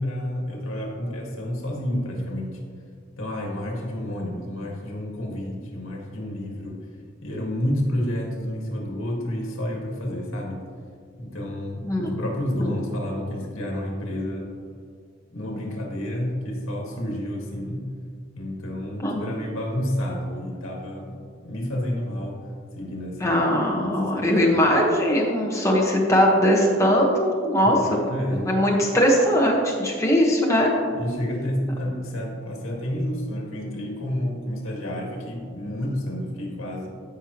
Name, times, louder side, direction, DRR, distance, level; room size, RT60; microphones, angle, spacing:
voice 1, 0.0-2.6 3.2-6.8 7.2-10.6 11.2-14.5 15.3-17.9 18.3-22.4 22.8-23.5 23.8-24.8 27.6-28.8 30.9-36.9, left 1 dB, 75° left, -1 dB, 1.8 m, -30 dB
voice 2, 11.8-12.2 12.6-12.7 19.0-19.2 23.2-28.0 28.3-30.7, equal, 15° left, -2 dB, 1.2 m, -20 dB
13.5 x 5.6 x 3.0 m, 2.2 s
head